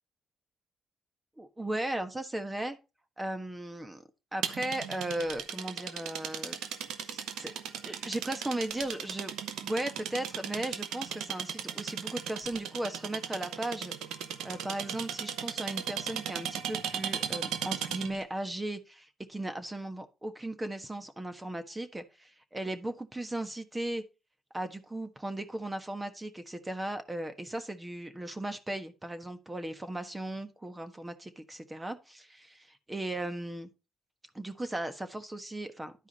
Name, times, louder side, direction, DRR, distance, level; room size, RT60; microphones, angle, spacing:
voice 1, 1.4-2.8 3.2-4.0 4.3-6.6 7.1-7.5 7.8-9.3 9.6-13.9 14.4-24.0 24.5-33.7 34.3-35.9, right 1 dB, 15° right, 1.3 m, -37 dB
sound 1, 4.4-18.2, right 9 dB, 85° right, 0.9 m, -37 dB
11.0 x 4.8 x 4.1 m
cardioid pair, 90°, 0 cm